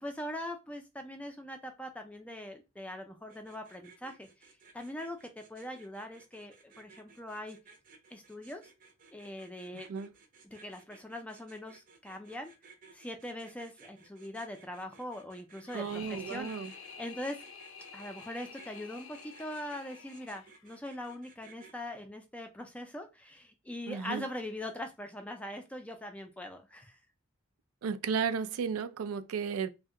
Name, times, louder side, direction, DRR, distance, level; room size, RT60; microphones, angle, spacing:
voice 1, 0.0-7.6 8.1-8.6 9.1-9.9 10.4-12.5 12.9-16.5 17.0-17.4 17.9-27.0, left 1 dB, 5° left, 0.3 m, -42 dB
sound 1, 3.3-21.7, right 4 dB, 40° right, 0.6 m, -58 dB
sound 2, 15.6-20.8, left 6 dB, 70° left, 0.5 m, -49 dB
voice 2, 15.7-16.7 23.9-24.3 27.8-29.7, right 6 dB, 90° right, 0.4 m, -34 dB
2.7 x 2.1 x 3.5 m
head